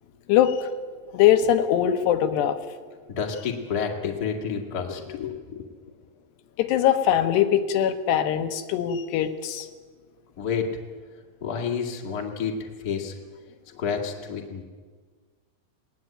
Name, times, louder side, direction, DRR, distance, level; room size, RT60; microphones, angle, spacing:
voice 1, 0.3-0.7 1.1-2.6 6.6-9.7, left 10 dB, 90° left, 7 dB, 3.3 m, -21 dB
voice 2, 3.1-5.7 10.4-10.7 11.4-13.1 13.8-14.6, left 6 dB, 30° left, 1 dB, 2.0 m, -29 dB
19.0 x 19.0 x 9.0 m, 1.5 s
omnidirectional pair, 4.7 m